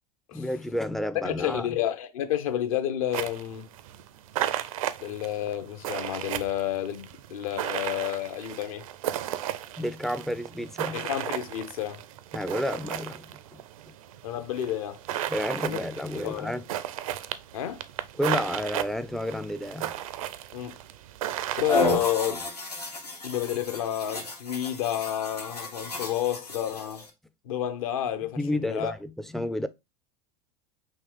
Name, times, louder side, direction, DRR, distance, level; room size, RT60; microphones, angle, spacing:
voice 1, 0.3-1.8 9.8-11.1 12.3-13.6 13.9-14.0 15.3-16.6 18.2-19.9 28.4-29.7, left 1 dB, ahead, 0.3 m, -31 dB
voice 2, 1.2-3.7 5.0-8.9 10.9-12.0 14.2-15.0 15.7-15.8 16.2-16.6 17.5-17.8 20.5-20.8 21.6-22.4 23.2-27.0 27.4-28.9, left 11 dB, 65° left, 0.7 m, -30 dB
sound 1, 3.1-21.9, right 12 dB, 60° right, 0.5 m, -35 dB
sound 2, 21.7-27.1, left 1 dB, 90° left, 1.1 m, -32 dB
5.7 x 2.9 x 3.2 m
figure-of-eight pair, 80°, 20 cm